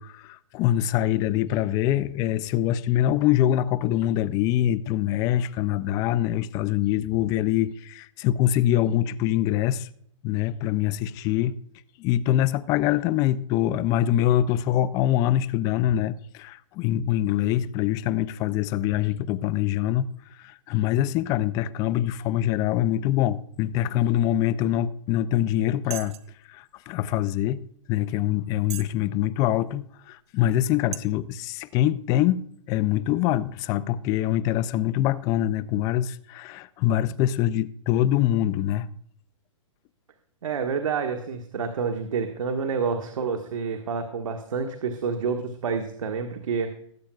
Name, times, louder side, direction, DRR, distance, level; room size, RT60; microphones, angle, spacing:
voice 1, 0.0-9.9 10.2-11.5 12.0-20.1 20.4-26.2 26.5-38.9, left 12 dB, 20° left, 0.4 m, -24 dB
sound 1, 25.1-25.2 25.9-26.3 27.1-27.2 27.8-27.9 28.6-29.0 29.6-29.7 30.4-30.5 30.9-31.0, right 13 dB, 55° right, 0.8 m, -36 dB
voice 2, 40.4-46.7, right 5 dB, 80° right, 1.5 m, -28 dB
20.0 x 8.9 x 2.3 m
hypercardioid pair, 150°, 17 cm